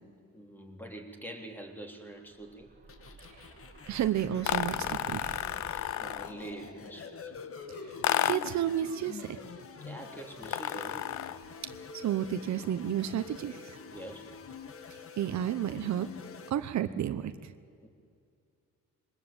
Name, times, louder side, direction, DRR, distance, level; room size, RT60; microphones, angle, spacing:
voice 1, 0.3-2.7 5.7-7.3 9.8-11.2 13.9-14.3 17.8-17.9, right 1 dB, 5° left, 3 dB, 3.5 m, -45 dB
Explosion, 2.1-6.7, right 4 dB, 30° right, 2.3 m, -50 dB
sound 1, 2.9-16.5, left 5 dB, 45° left, 1.7 m, -47 dB
voice 2, 3.9-5.3 7.8-7.9 8.2-9.4 11.9-13.8 15.2-16.1 16.5-17.5, right 10 dB, 65° right, 11 dB, 1.0 m, -31 dB
sound 2, 4.4-6.4 8.0-8.6 10.4-11.5, left 12 dB, 65° left, 0.7 m, -32 dB
22.0 x 20.0 x 9.0 m, 2.3 s
cardioid pair, 90°, 30 cm